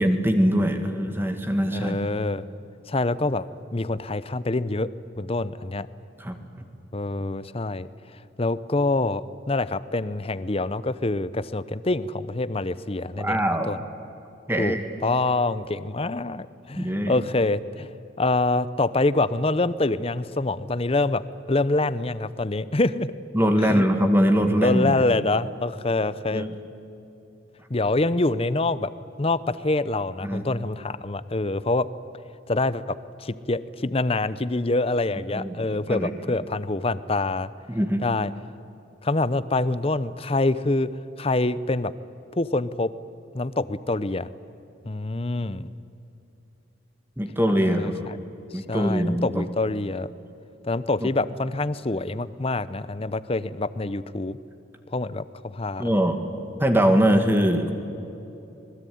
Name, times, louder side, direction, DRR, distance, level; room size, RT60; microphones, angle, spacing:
voice 1, 0.0-2.0 6.2-6.4 13.2-13.7 14.5-14.8 16.8-17.2 23.3-25.0 26.3-26.5 30.2-30.4 35.3-36.1 37.7-38.0 47.2-47.9 48.5-49.4 51.0-51.1 55.8-56.2 56.6-57.7, equal, 10° right, 6 dB, 1.8 m, -22 dB
voice 2, 1.7-2.4 2.9-3.5 3.7-4.9 5.2-5.9 6.9-7.9 8.4-13.8 14.6-17.9 18.2-21.2 21.5-23.1 23.6-23.8 24.6-26.5 27.7-28.9 29.2-31.9 32.5-37.5 38.0-38.3 39.0-40.9 41.2-41.9 42.4-42.9 43.3-44.3 44.9-45.7 47.6-48.2 48.7-50.1 50.6-54.4 54.9-55.9, left 2 dB, 30° left, 16 dB, 0.7 m, -25 dB
26.0 x 21.0 x 9.4 m, 2.9 s
head